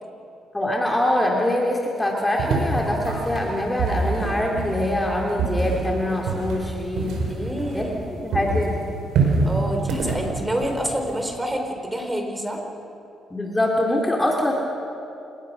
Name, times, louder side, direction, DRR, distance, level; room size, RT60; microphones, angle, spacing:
voice 1, 0.5-7.2 7.7-7.8 8.2-8.8 13.3-14.5, left 1 dB, 15° left, -1 dB, 2.8 m, -24 dB
sound 1, 2.4-8.1 8.3-11.2, right 3 dB, 85° right, 4.6 m, -25 dB
voice 2, 7.3-8.2 9.5-12.6, equal, 15° right, 3 dB, 3.8 m, -28 dB
29.0 x 19.0 x 6.1 m, 2.7 s
cardioid pair, 90°, 0 cm